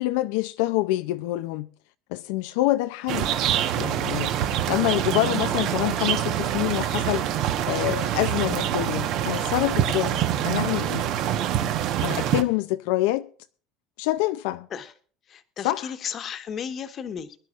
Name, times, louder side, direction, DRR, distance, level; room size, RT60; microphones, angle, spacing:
voice 1, 0.0-1.7 2.1-3.3 3.8-10.2 10.4-11.1 12.0-13.2 14.0-14.7 15.6-15.9, left 17 dB, 75° left, 0.5 m, -26 dB
sound 1, 3.1-12.4, right 11 dB, 50° right, 1.1 m, -25 dB
voice 2, 15.3-17.4, left 7 dB, 35° left, 1.3 m, -34 dB
22.5 x 11.0 x 2.5 m
cardioid pair, 150°, 0 cm